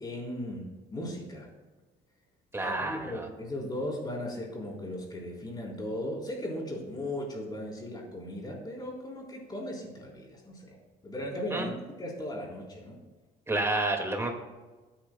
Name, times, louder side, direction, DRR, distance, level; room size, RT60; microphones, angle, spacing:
voice 1, 0.0-1.5 2.6-10.8 11.0-11.7 12.0-13.0, left 1 dB, 25° left, -2 dB, 3.8 m, -37 dB
voice 2, 2.5-3.3 11.5-11.7 13.5-14.3, right 2 dB, 15° right, 3 dB, 2.0 m, -29 dB
20.5 x 9.0 x 2.3 m, 1.2 s
cardioid pair, 110°, 17 cm